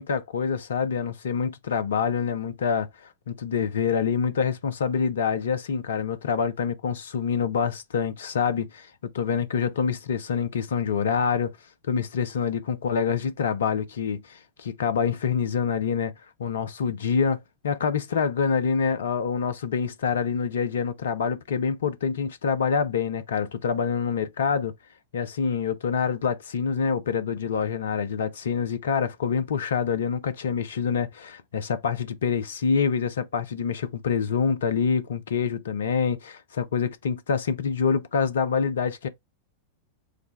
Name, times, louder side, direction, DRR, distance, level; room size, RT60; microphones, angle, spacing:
voice 1, 0.0-11.6 11.9-16.1 16.4-24.7 25.1-39.1, left 6 dB, 65° left, 0.4 m, -26 dB
4.8 x 2.1 x 3.2 m
figure-of-eight pair, 90°, 0 cm